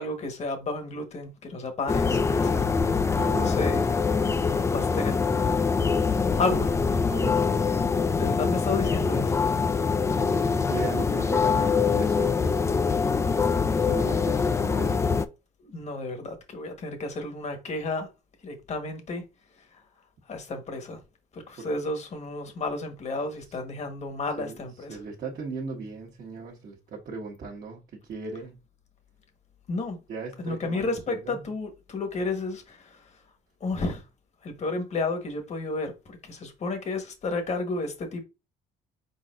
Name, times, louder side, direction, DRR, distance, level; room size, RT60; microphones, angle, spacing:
voice 1, 0.0-2.7 3.4-3.8 4.6-5.2 6.3-6.8 8.1-9.4 13.8-14.0 15.6-18.1 18.4-19.2 20.3-21.0 21.3-25.0 29.7-30.0 30.4-33.0 33.6-34.0 34.4-38.2, left 3 dB, 40° left, 1.3 m, -32 dB
sound 1, 1.9-15.3, left 5 dB, 15° left, 0.3 m, -24 dB
voice 2, 3.1-3.5 7.1-7.4 10.2-12.6 13.8-15.0 21.6-21.7 24.4-24.6 24.9-28.6 30.1-31.5, right 4 dB, 55° right, 1.2 m, -37 dB
4.6 x 4.1 x 2.5 m
cardioid pair, 110°, 17 cm